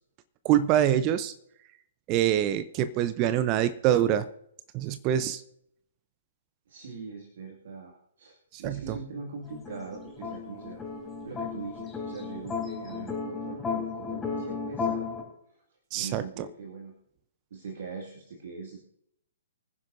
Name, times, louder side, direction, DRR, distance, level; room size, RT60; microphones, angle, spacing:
voice 1, 0.4-1.3 2.1-4.3 4.7-5.4 8.5-9.0 15.9-16.5, right 11 dB, 30° right, 14 dB, 0.7 m, -25 dB
voice 2, 6.7-10.8 11.2-15.1 15.9-17.0 17.5-18.8, right 4 dB, 55° right, 1 dB, 2.3 m, -42 dB
sound 1, 9.5-15.2, left 5 dB, 10° left, 3.6 m, -34 dB
24.5 x 10.5 x 2.7 m, 0.74 s
figure-of-eight pair, 120°, 0 cm